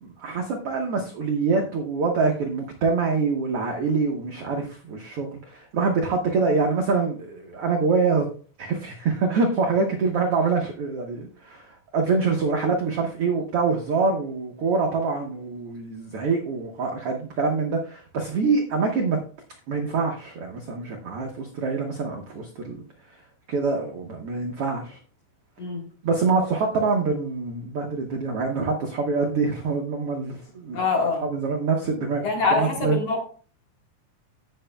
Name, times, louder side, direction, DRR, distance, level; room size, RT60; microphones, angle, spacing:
voice 1, 0.0-8.3 8.6-19.2 19.7-22.8 23.5-25.0 26.0-30.8 31.2-32.2 32.5-33.0, right 4 dB, 75° right, 2 dB, 1.3 m, -25 dB
voice 2, 30.7-31.3 32.2-33.2, left 3 dB, 50° left, 1 dB, 2.5 m, -24 dB
17.5 x 6.0 x 2.3 m, 0.41 s
omnidirectional pair, 4.2 m